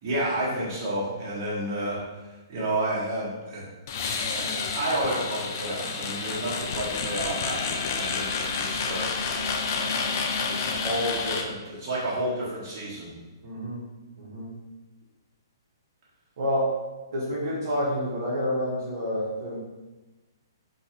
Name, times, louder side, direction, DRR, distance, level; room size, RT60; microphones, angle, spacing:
voice 1, 0.0-2.0 2.5-3.7 4.3-9.1 9.7-10.2 10.5-13.2, right 1 dB, 40° right, -7 dB, 1.4 m, -31 dB
sound 1, 3.9-11.4, left 5 dB, 45° left, 0.4 m, -29 dB
voice 2, 13.4-13.8 14.2-14.5 16.4-16.6 17.1-19.6, left 1 dB, 60° right, -7 dB, 1.0 m, -28 dB
3.7 x 2.8 x 2.8 m, 1.2 s
hypercardioid pair, 130°, 2 cm